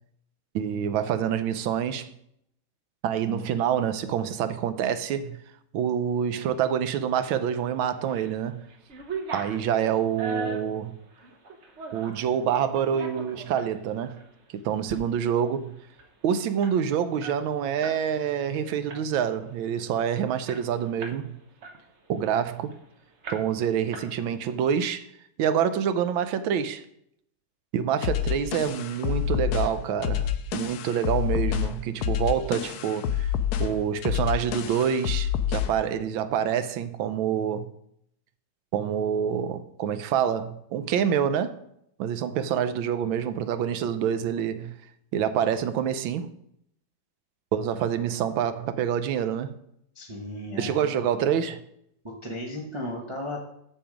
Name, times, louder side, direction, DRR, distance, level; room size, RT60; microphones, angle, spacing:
voice 1, 0.5-2.1 3.0-5.4 5.7-8.6 9.3-10.9 11.9-14.2 14.5-15.7 16.2-21.4 22.1-22.7 23.3-25.1 25.4-26.8 27.7-33.3 33.6-37.7 38.7-41.6 42.0-44.7 45.1-46.3 47.5-49.5 50.6-51.6, right 8 dB, 80° right, 1.4 m, -27 dB
sound 1, 7.8-8.3 8.7-12.2 12.7-13.7 14.2-14.3 14.7-15.0 15.3-15.4 15.7-18.0 18.3-18.5 18.9-19.3 19.8-19.9 20.1-21.2 21.6-22.8 23.2-23.6 23.9-24.5, right 3 dB, 50° right, 0.9 m, -39 dB
sound 2, 28.0-35.8, left 9 dB, 75° left, 0.9 m, -28 dB
voice 2, 49.9-50.9 52.0-53.5, left 1 dB, 20° right, 1.0 m, -35 dB
7.4 x 7.0 x 5.0 m
omnidirectional pair, 2.2 m